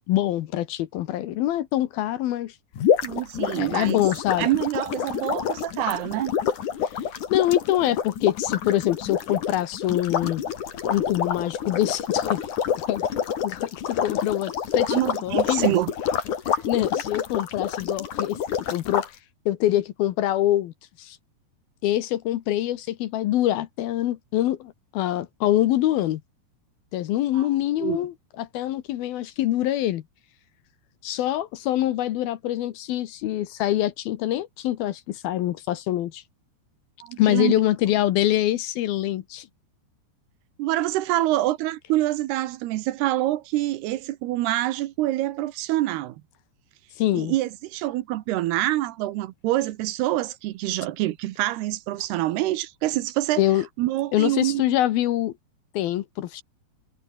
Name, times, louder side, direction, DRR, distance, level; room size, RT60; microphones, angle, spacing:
voice 1, 0.1-2.5 3.5-4.5 6.9-10.4 10.9-12.5 12.8-13.0 13.4-15.7 16.7-18.4 18.7-19.1 19.5-20.7 21.0-21.2 21.8-26.2 26.9-30.0 31.0-36.2 37.2-39.5 47.0-47.3 53.4-53.6 54.1-55.3 55.7-56.4, left 13 dB, 70° left, 2.7 m, -25 dB
sound 1, 2.8-19.1, left 8 dB, 50° left, 3.5 m, -27 dB
voice 2, 3.0-4.0 4.4-6.3 14.9-15.9 16.5-16.6 27.3-27.5 27.8-28.1 37.0-37.6 40.6-46.2 47.1-53.4 53.8-54.8, right 15 dB, 80° right, 2.9 m, -26 dB
omnidirectional pair, 4.9 m